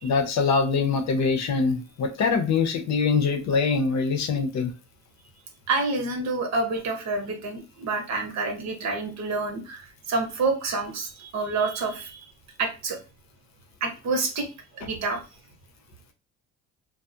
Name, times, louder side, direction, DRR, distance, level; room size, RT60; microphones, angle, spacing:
voice 1, 0.0-4.7, left 5 dB, 65° left, 7 dB, 0.6 m, -23 dB
voice 2, 5.7-12.2 12.6-13.0 13.8-14.5 14.7-15.2, right 3 dB, 65° right, 3 dB, 0.8 m, -28 dB
2.3 x 2.0 x 2.7 m, 0.30 s
cardioid pair, 90°, 30 cm